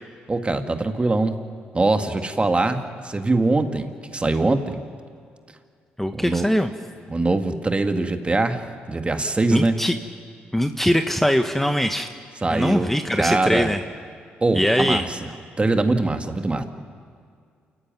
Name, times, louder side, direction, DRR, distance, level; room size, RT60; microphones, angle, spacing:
voice 1, 0.3-1.4 1.7-4.8 6.1-6.5 7.1-9.8 12.4-13.7 14.4-15.3 15.6-16.6, right 2 dB, 25° right, 6 dB, 2.1 m, -23 dB
voice 2, 6.0-6.7 9.5-10.0 10.5-12.1 12.5-13.8 14.5-15.1, equal, 5° left, 6 dB, 1.3 m, -21 dB
28.5 x 14.5 x 9.3 m, 2.2 s
supercardioid pair, 55°, 4 cm